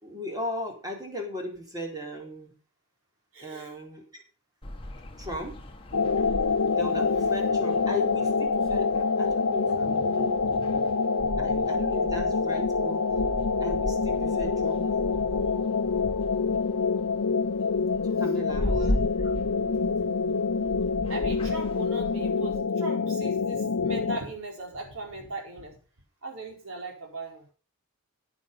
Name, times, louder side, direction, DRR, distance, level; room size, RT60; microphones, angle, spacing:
voice 1, 0.0-2.5 3.4-4.0 5.2-5.6 6.7-10.6 11.4-13.0 13.6-14.9 18.0-18.7, left 1 dB, 20° right, 1 dB, 4.0 m, -37 dB
voice 2, 3.3-3.7 9.8-11.8 18.6-19.0 21.1-25.8 26.2-27.4, right 2 dB, 65° right, 1 dB, 4.6 m, -39 dB
sound 1, 4.6-22.6, left 1 dB, 25° left, 1.8 m, -38 dB
sound 2, 5.9-24.2, left 4 dB, 85° left, 0.8 m, -26 dB
9.9 x 9.7 x 5.5 m, 0.37 s
head